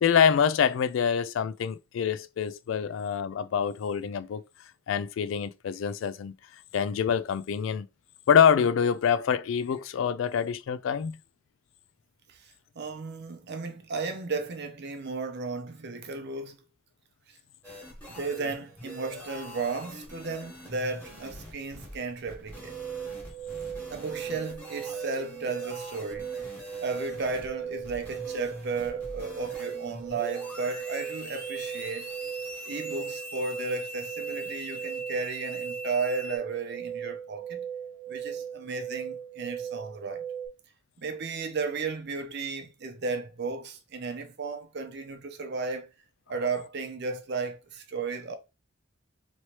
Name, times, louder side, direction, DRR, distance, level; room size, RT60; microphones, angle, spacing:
voice 1, 0.0-4.4 4.9-6.3 6.7-7.9 8.3-11.2, left 7 dB, 70° left, 0.3 m, -25 dB
voice 2, 12.3-16.6 17.3-17.4 18.1-22.8 23.9-26.5 26.8-32.1 32.6-37.7 38.1-40.2 41.0-45.9 46.3-48.3, right 4 dB, 60° right, 0.6 m, -34 dB
sound 1, 17.6-36.4, left 1 dB, 10° left, 1.5 m, -43 dB
sound 2, 22.5-40.5, right 8 dB, 15° right, 1.1 m, -38 dB
3.1 x 3.1 x 2.8 m
head